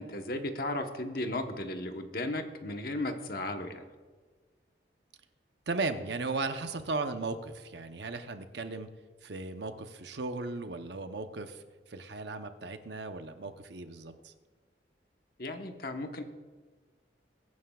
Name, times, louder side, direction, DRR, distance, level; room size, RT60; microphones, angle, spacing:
voice 1, 0.0-3.8 15.4-16.2, left 1 dB, 55° left, 5 dB, 1.1 m, -35 dB
voice 2, 5.7-8.9 9.2-14.3, right 3 dB, 75° right, 8 dB, 0.8 m, -36 dB
22.5 x 9.4 x 2.4 m, 1.4 s
head